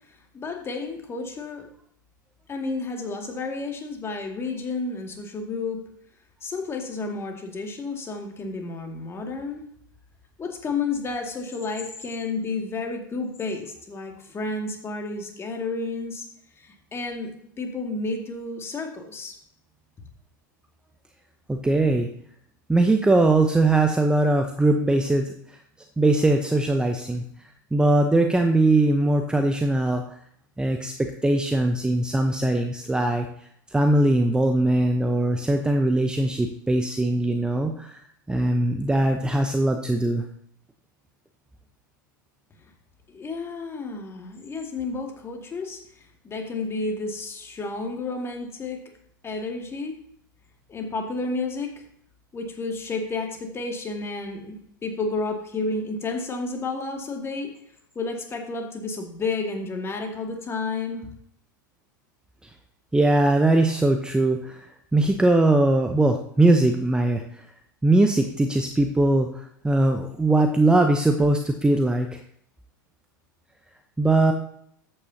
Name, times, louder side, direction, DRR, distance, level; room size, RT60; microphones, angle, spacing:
voice 1, 0.3-1.7 2.5-5.8 6.4-9.7 10.4-16.3 16.6-19.4 43.1-45.8 46.2-48.8 49.2-49.9 50.7-51.7 52.3-57.5 58.0-61.1, left 3 dB, 25° left, 2 dB, 2.2 m, -31 dB
voice 2, 21.5-22.1 22.7-25.2 26.0-27.2 27.7-30.2 30.6-30.9 31.2-33.3 33.7-38.0 38.3-40.2 62.9-64.7 64.9-67.4 67.8-72.2 74.0-74.3, right 2 dB, 10° right, 4 dB, 0.8 m, -21 dB
13.5 x 8.8 x 2.8 m, 0.68 s
figure-of-eight pair, 90°, 11 cm